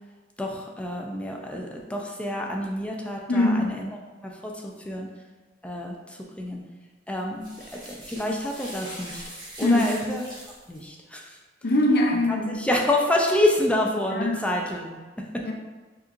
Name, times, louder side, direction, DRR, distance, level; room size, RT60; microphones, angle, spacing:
voice 1, 0.4-5.1 5.6-6.6 7.1-7.5 7.7-9.2 9.6-10.2 10.7-11.4 12.5-15.4, left 1 dB, 5° left, 0 dB, 0.4 m, -28 dB
voice 2, 3.3-3.7 9.6-9.9 11.6-12.7 14.1-14.5 15.4-15.5, left 1 dB, 60° left, 1 dB, 0.6 m, -22 dB
sound 1, 7.4-10.9 13.4-13.5, equal, 20° right, 1.1 m, -42 dB
4.6 x 3.1 x 2.5 m, 1.3 s
head